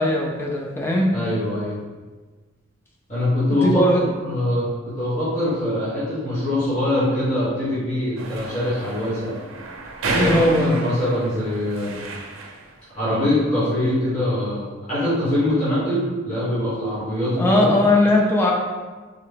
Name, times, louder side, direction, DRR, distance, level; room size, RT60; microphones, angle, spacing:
voice 1, 0.0-1.1 3.5-4.0 10.1-10.8 17.4-18.5, left 1 dB, 10° left, -1 dB, 0.5 m, -19 dB
voice 2, 1.1-1.8 3.1-3.9 4.2-4.7 5.0-9.4 10.0-12.0 12.9-17.7, left 1 dB, 35° left, -12 dB, 1.5 m, -23 dB
sound 1, 8.2-12.7, right 2 dB, 85° right, 0.5 m, -31 dB
3.8 x 3.3 x 3.3 m, 1.3 s
head